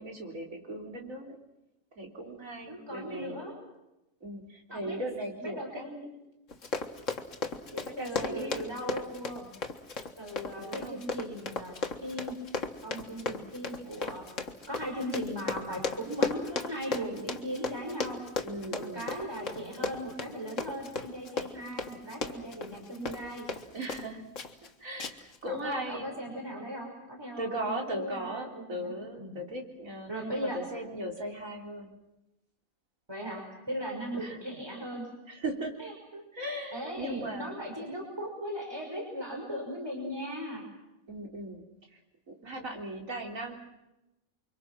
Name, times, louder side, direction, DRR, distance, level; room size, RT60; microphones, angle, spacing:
voice 1, 0.0-1.4 2.0-3.4 4.2-5.9 8.0-8.7 10.5-11.0 18.4-19.1 23.7-24.3 24.8-25.1 25.4-26.1 27.4-32.0 34.1-34.4 35.3-35.7 36.1-37.6 41.1-41.6 42.3-43.5, right 1 dB, 70° right, 1 dB, 4.2 m, -38 dB
voice 2, 2.7-3.5 4.7-5.0 5.4-6.0 7.7-9.5 10.2-12.4 12.8-14.2 14.7-18.2 18.7-23.5 25.5-28.9 29.2-29.4 30.1-30.6 33.1-35.1 35.8-35.9 36.7-40.6, equal, 15° right, 0 dB, 5.8 m, -38 dB
Run, 6.5-24.1 24.4-24.7 25.0-25.4 25.7-25.8, left 4 dB, 65° left, 2.0 m, -35 dB
29.5 x 24.5 x 6.2 m, 0.94 s
omnidirectional pair, 1.4 m